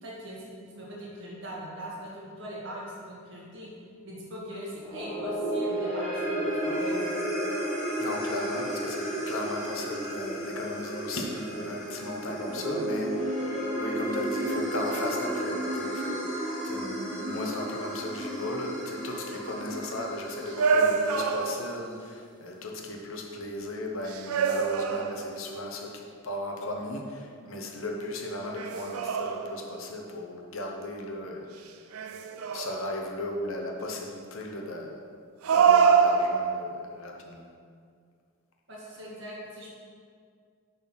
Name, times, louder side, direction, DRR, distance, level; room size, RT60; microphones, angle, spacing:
voice 1, 0.0-3.7 4.0-7.0 38.7-39.7, equal, 55° right, -6 dB, 2.0 m, -41 dB
sound 1, 4.8-21.2, right 1 dB, 5° left, 1.4 m, -32 dB
voice 2, 8.0-13.4 13.7-31.7 32.3-35.0 35.5-37.5, left 1 dB, 65° left, 1 dB, 0.9 m, -36 dB
sound 2, 20.6-21.9 24.1-25.5 28.5-29.8 31.9-33.0 35.4-36.8, right 6 dB, 75° right, 0.4 m, -25 dB
7.3 x 4.1 x 5.9 m, 2.2 s
head